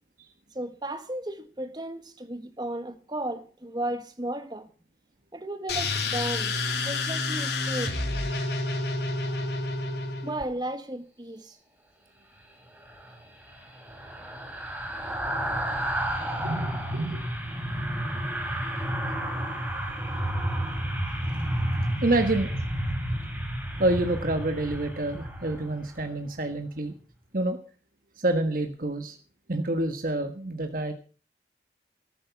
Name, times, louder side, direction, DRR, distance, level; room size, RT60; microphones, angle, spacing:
voice 1, 0.5-4.7 5.3-8.0 9.2-9.5 10.2-11.6, right 1 dB, 25° right, 1.5 m, -34 dB
sound 1, 5.7-10.4, left 3 dB, 65° left, 3.3 m, -29 dB
sound 2, 12.8-26.1 26.5-26.7, right 1 dB, 10° right, 4.1 m, -31 dB
voice 2, 16.4-17.3 22.0-22.6 23.2-23.3 23.8-26.9 27.3-27.6 28.2-29.2 29.5-30.9, right 2 dB, 50° right, 1.5 m, -28 dB
13.5 x 13.0 x 6.0 m
head